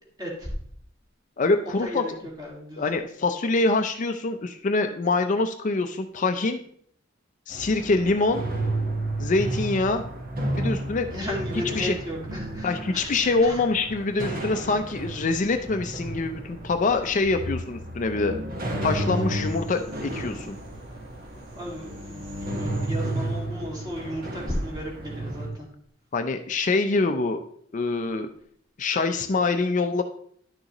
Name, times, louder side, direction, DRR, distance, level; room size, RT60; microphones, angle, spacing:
voice 1, 0.2-0.5 1.6-2.1 2.4-2.8 11.1-13.6 21.6-25.7, equal, 20° right, -2 dB, 2.0 m, -34 dB
voice 2, 1.4-2.0 2.8-6.6 7.5-8.4 9.2-10.0 10.6-11.1 11.8-11.9 12.6-18.3 18.8-20.6 26.1-27.4 27.7-28.3 28.8-30.0, left 3 dB, 40° left, 7 dB, 0.5 m, -25 dB
sound 1, 7.5-25.5, right 2 dB, 50° right, 1.3 m, -33 dB
sound 2, 18.6-20.6 21.6-23.1, left 2 dB, 75° right, 1.8 m, -34 dB
10.5 x 6.4 x 3.0 m, 0.63 s
head